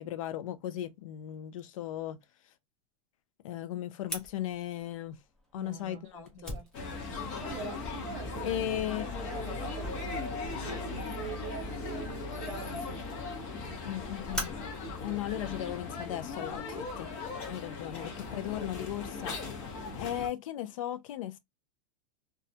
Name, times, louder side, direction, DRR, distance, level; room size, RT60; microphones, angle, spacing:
voice 1, 0.0-2.2 3.4-5.2 5.5-6.5 8.4-9.1 13.9-14.5 15.0-17.1 17.4-19.4 19.7-21.4, left 12 dB, 85° left, 0.4 m, -36 dB
Fire, 4.1-16.6, left 1 dB, 5° left, 0.3 m, -46 dB
voice 2, 5.5-7.0 7.4-8.7 9.2-13.3 17.9-18.2, right 6 dB, 55° right, 0.7 m, -44 dB
sound 1, 6.7-20.3, left 3 dB, 35° left, 0.7 m, -38 dB
2.3 x 2.0 x 2.6 m
supercardioid pair, 175°, 17 cm